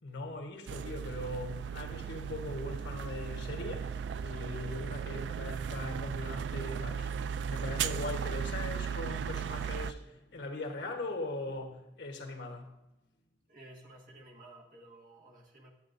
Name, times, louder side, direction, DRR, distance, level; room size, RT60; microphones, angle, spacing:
voice 1, 0.0-12.7, left 2 dB, 85° left, 1.2 m, -40 dB
sound 1, 0.7-9.9, right 7 dB, 80° right, 0.3 m, -36 dB
voice 2, 13.5-15.7, right 1 dB, 50° right, 1.6 m, -54 dB
11.0 x 7.8 x 2.6 m
head